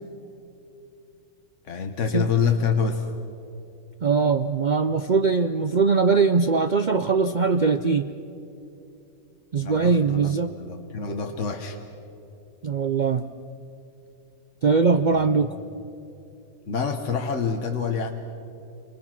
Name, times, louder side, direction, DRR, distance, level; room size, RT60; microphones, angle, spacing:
voice 1, 1.7-3.0 9.6-10.3 10.6-11.8 15.1-15.2 16.7-18.1, left 6 dB, 55° left, 4 dB, 1.5 m, -26 dB
voice 2, 4.0-8.1 9.5-10.6 12.6-13.3 14.6-15.6, right 4 dB, 65° right, 9 dB, 0.4 m, -21 dB
28.5 x 24.5 x 6.0 m, 2.8 s
omnidirectional pair, 1.6 m